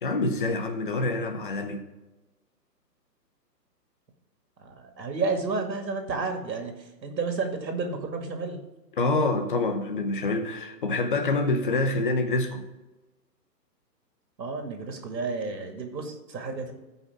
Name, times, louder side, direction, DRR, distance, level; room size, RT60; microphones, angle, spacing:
voice 1, 0.0-1.8 9.0-12.6, left 2 dB, 30° left, 6 dB, 0.8 m, -26 dB
voice 2, 4.6-8.6 14.4-16.7, right 4 dB, 90° right, 4 dB, 2.2 m, -31 dB
14.5 x 5.5 x 3.6 m, 1.1 s
hypercardioid pair, 170°, 50 cm